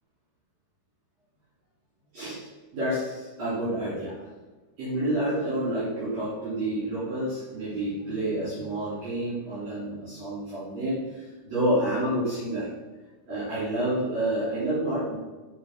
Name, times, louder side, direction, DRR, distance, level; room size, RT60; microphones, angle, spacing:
voice 1, 2.1-4.1 4.8-12.7 13.3-15.2, right 1 dB, 45° right, -11 dB, 4.5 m, -29 dB
8.5 x 5.8 x 6.2 m, 1.3 s
omnidirectional pair, 4.7 m